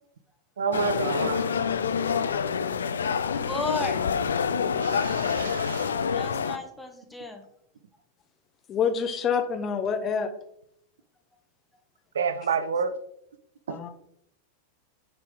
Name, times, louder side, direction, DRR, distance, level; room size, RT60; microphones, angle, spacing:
voice 1, 0.6-1.5 4.7-6.0 12.1-12.9 13.7-13.8, right 6 dB, 65° right, 13 dB, 0.6 m, -29 dB
sound 1, 0.7-6.6, left 6 dB, 70° left, 0.4 m, -27 dB
voice 2, 3.3-4.0 6.1-7.4, left 3 dB, 5° left, 3 dB, 1.0 m, -33 dB
voice 3, 8.7-10.3 13.7-13.9, left 6 dB, 30° left, 8 dB, 0.8 m, -27 dB
10.5 x 3.7 x 3.7 m, 0.75 s
figure-of-eight pair, 90°, 0 cm